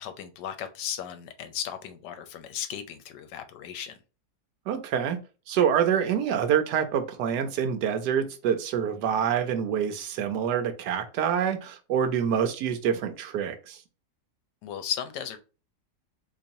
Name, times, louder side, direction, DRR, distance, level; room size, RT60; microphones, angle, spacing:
voice 1, 0.0-4.0 14.6-15.4, left 9 dB, 80° left, 1.2 m, -35 dB
voice 2, 4.7-5.2 5.5-13.8, right 8 dB, 75° right, 1.1 m, -26 dB
4.0 x 3.0 x 2.6 m
omnidirectional pair, 1.9 m